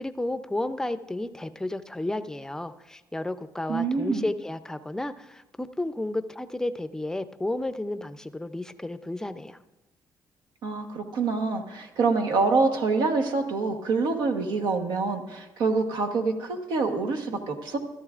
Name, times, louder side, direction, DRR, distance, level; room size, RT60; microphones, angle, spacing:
voice 1, 0.0-9.6, left 1 dB, 5° left, 11 dB, 0.5 m, -32 dB
voice 2, 3.7-4.2 10.6-17.8, right 4 dB, 80° right, 5 dB, 1.2 m, -26 dB
14.0 x 13.0 x 2.5 m, 1.1 s
cardioid pair, 90°, 8 cm